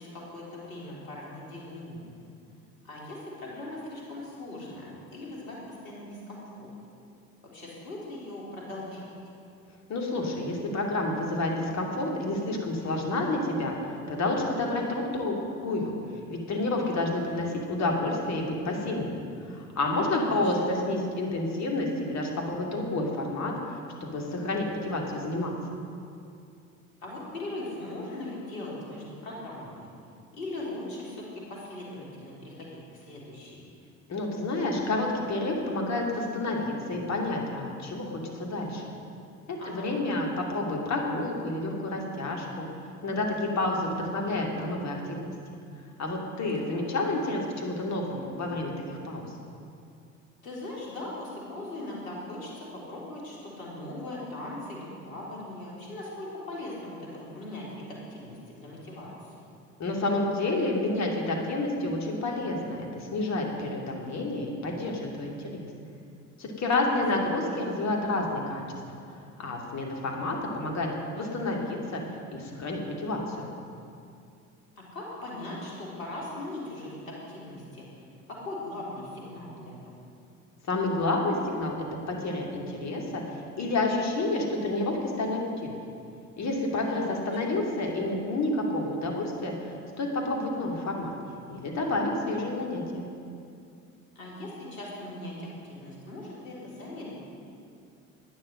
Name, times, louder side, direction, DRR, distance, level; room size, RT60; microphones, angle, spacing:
voice 1, 0.0-2.1 2.8-6.7 7.5-9.1 19.9-20.7 27.0-29.9 30.3-33.6 39.6-40.0 46.6-46.8 50.4-59.3 67.2-67.4 74.8-77.9 78.3-79.8 86.8-87.1 87.4-87.6 94.1-97.3, left 1 dB, 75° left, -4 dB, 3.4 m, -40 dB
voice 2, 9.9-13.7 14.1-15.3 15.6-15.9 16.3-23.5 24.0-25.5 34.1-38.8 39.5-42.7 43.0-45.3 46.0-49.2 59.8-65.7 66.4-68.6 69.4-70.9 71.1-72.0 72.3-73.5 80.7-81.7 82.1-85.7 86.4-91.1 91.5-93.1, left 2 dB, 40° left, 0 dB, 2.6 m, -29 dB
12.0 x 10.0 x 6.5 m, 2.4 s
figure-of-eight pair, 55°, 42 cm